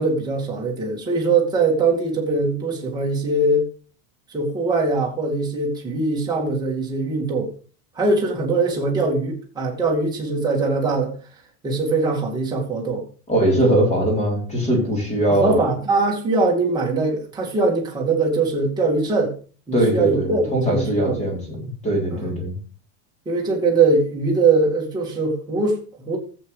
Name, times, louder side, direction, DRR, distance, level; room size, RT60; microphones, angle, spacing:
voice 1, 0.0-3.7 4.3-7.5 8.0-11.2 11.6-13.0 15.3-19.3 19.7-21.3 22.1-22.2 23.3-26.2, right 3 dB, 10° right, 2.3 m, -21 dB
voice 2, 13.3-15.6 19.7-22.6, right 1 dB, 15° left, 3.8 m, -21 dB
14.0 x 8.0 x 3.4 m
supercardioid pair, 175°, 46 cm